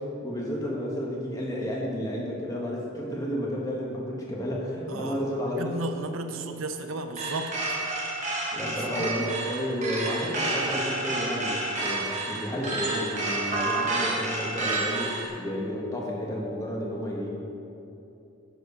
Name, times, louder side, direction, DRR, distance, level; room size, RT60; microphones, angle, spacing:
voice 1, 0.0-5.7 8.5-17.3, equal, 15° left, -3 dB, 1.2 m, -31 dB
voice 2, 5.6-7.5 8.6-8.7 9.0-9.1, right 2 dB, 75° right, 7 dB, 0.6 m, -33 dB
sound 1, 7.2-15.3, right 2 dB, 35° right, 1.1 m, -30 dB
10.0 x 4.4 x 5.3 m, 2.9 s
head